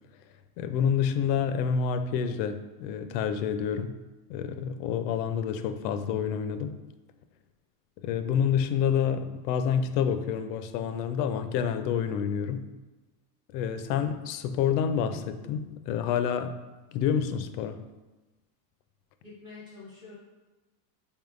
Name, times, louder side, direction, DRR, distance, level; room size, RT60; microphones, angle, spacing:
voice 1, 0.6-4.0 4.3-6.8 8.0-12.7 13.5-16.5 16.9-17.8, left 7 dB, 80° left, 9 dB, 0.6 m, -28 dB
voice 2, 19.2-20.2, left 4 dB, 10° right, -7 dB, 0.3 m, -46 dB
4.3 x 3.6 x 2.4 m, 1.1 s
supercardioid pair, 150°, 49 cm